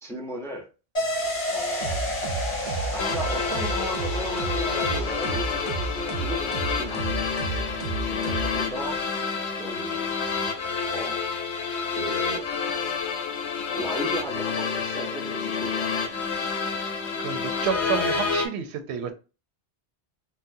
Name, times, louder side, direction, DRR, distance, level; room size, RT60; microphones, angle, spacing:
voice 1, 0.0-0.7 1.5-2.0 2.9-7.8 8.1-9.0 9.6-10.1 10.9-11.2 11.9-12.5 13.7-16.1, equal, 5° left, 0.5 m, -36 dB
sound 1, 0.9-10.3 10.7-10.8, left 1 dB, 35° left, 1.4 m, -33 dB
sound 2, 1.8-9.0, right 4 dB, 55° right, 0.6 m, -32 dB
sound 3, 3.0-18.5, left 5 dB, 85° left, 1.0 m, -29 dB
voice 2, 17.2-19.1, right 7 dB, 85° right, 0.9 m, -29 dB
4.0 x 2.1 x 2.6 m
omnidirectional pair, 1.1 m